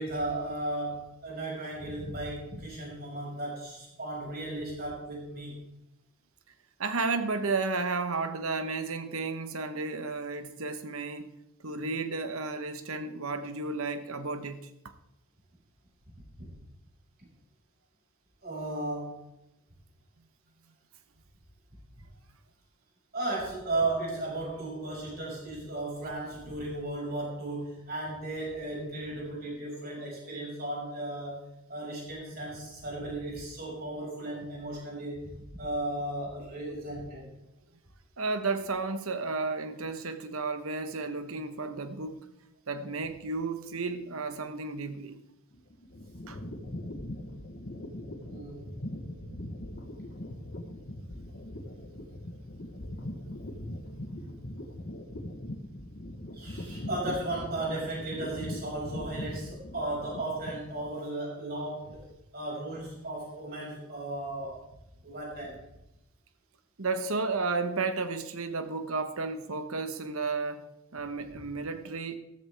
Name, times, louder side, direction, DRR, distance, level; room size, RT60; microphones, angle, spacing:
voice 1, 0.0-5.7 16.4-16.5 18.4-19.2 23.1-31.4 31.7-37.3 48.2-48.7 49.3-49.5 56.3-62.1 62.3-64.6 65.0-65.6, right 2 dB, 45° right, 5.8 m, -35 dB
voice 2, 6.8-11.4 11.6-14.9 38.2-42.3 42.7-45.2 46.3-46.4 51.2-51.3 66.8-70.6 70.9-72.2, right 3 dB, 75° right, 1.1 m, -33 dB
sound 1, 45.5-61.0, left 1 dB, 45° left, 1.1 m, -41 dB
14.0 x 13.0 x 3.4 m
head